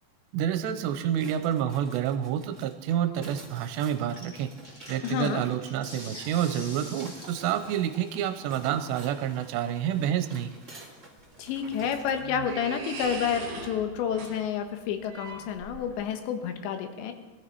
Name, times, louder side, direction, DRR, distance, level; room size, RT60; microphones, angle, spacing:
voice 1, 0.3-4.5 4.9-10.5, right 10 dB, 85° right, 8 dB, 3.0 m, -28 dB
sound 1, 1.1-12.2, right 2 dB, 25° right, 1.6 m, -51 dB
sound 2, 4.0-13.2, equal, 20° left, 1.3 m, -48 dB
voice 2, 5.0-5.4 11.4-17.1, left 8 dB, 85° left, 6 dB, 3.5 m, -30 dB
sound 3, 11.2-16.2, right 5 dB, 50° right, 3.3 m, -41 dB
21.5 x 13.5 x 4.7 m, 1.2 s
omnidirectional pair, 5.0 m